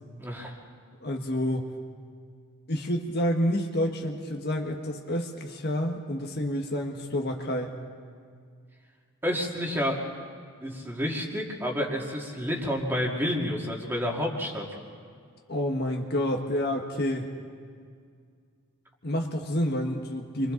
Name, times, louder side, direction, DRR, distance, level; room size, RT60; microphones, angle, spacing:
voice 1, 0.2-0.6 9.2-10.0 10.6-14.7, equal, 10° right, -1 dB, 2.3 m, -29 dB
voice 2, 1.0-1.7 2.7-7.8 15.5-17.3 19.0-20.5, equal, 50° left, 2 dB, 1.5 m, -29 dB
29.5 x 23.5 x 3.9 m, 2.1 s
head